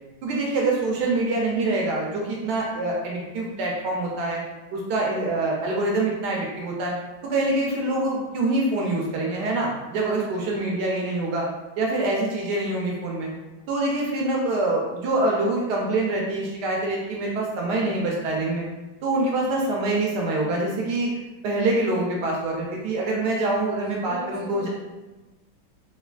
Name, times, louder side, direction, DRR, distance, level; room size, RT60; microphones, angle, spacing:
voice 1, 0.2-4.4 4.7-6.9 7.2-11.5 11.8-13.3 13.7-18.6 19.0-21.1 21.4-24.7, right 2 dB, 75° right, -2 dB, 1.1 m, -25 dB
voice 2, 10.0-10.6 23.8-24.7, left 2 dB, 35° left, -9 dB, 0.7 m, -40 dB
3.2 x 2.6 x 2.2 m, 1.1 s
omnidirectional pair, 2.0 m